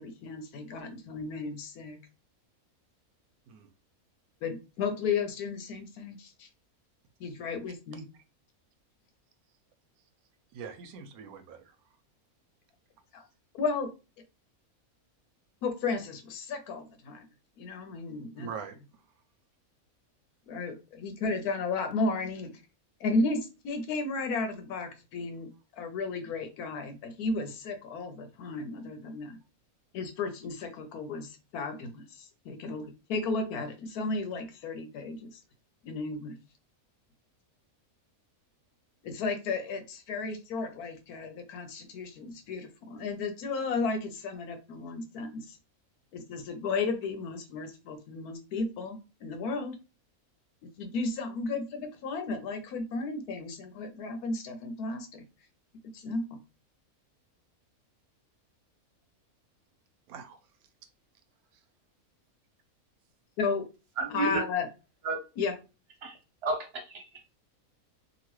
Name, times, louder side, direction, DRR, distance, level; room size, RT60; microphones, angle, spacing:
voice 1, 0.0-2.0 4.4-6.5 7.2-8.0 13.1-13.2 13.5-13.9 15.6-17.2 17.6-18.5 20.5-22.5 23.0-29.4 29.9-35.4 35.8-36.4 39.0-45.6 46.1-49.8 50.6-55.2 55.9-56.4 63.4-63.7 64.1-64.7 65.4-65.5, left 3 dB, 85° left, 7 dB, 1.2 m, -34 dB
voice 2, 10.5-11.8 18.4-18.8 60.1-60.4, right 6 dB, 85° right, 8 dB, 1.1 m, -42 dB
voice 3, 64.0-64.4 65.0-65.2 66.0-66.2 66.4-67.1, right 3 dB, 50° right, 3 dB, 0.9 m, -31 dB
2.9 x 2.5 x 3.0 m, 0.30 s
omnidirectional pair, 1.6 m